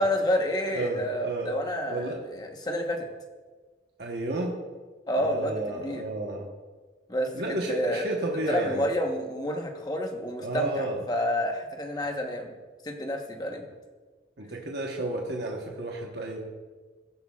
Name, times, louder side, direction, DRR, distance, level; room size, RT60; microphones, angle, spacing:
voice 1, 0.0-3.1 5.1-6.0 7.1-7.3 7.7-8.0 8.5-12.5 12.8-13.7, equal, 20° left, 3 dB, 1.0 m, -29 dB
voice 2, 0.7-1.5 1.9-2.2 4.0-4.5 5.2-6.5 7.3-8.9 10.4-11.0 14.4-16.4, right 2 dB, 65° right, 0 dB, 1.1 m, -32 dB
14.0 x 11.5 x 2.4 m, 1.4 s
head